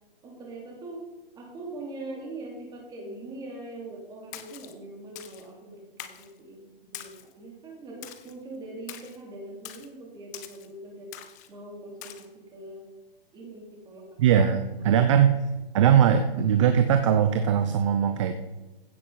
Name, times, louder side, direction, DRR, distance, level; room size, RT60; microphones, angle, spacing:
voice 1, 0.2-1.0 1.3-11.1 11.5-12.8 13.3-14.2, right 2 dB, 15° right, -1 dB, 3.1 m, -42 dB
Splash splatter, 4.3-4.7 5.2-5.5 6.0-6.3 6.9-7.3 8.0-8.3 8.9-9.2 9.6-9.9 10.3-10.7 11.1-11.5 12.0-12.3, left 12 dB, 20° left, 0.6 m, -43 dB
voice 2, 14.2-15.4 15.7-18.3, right 8 dB, 30° right, 9 dB, 0.7 m, -20 dB
15.5 x 7.4 x 5.7 m, 1.1 s
hypercardioid pair, 155°, 29 cm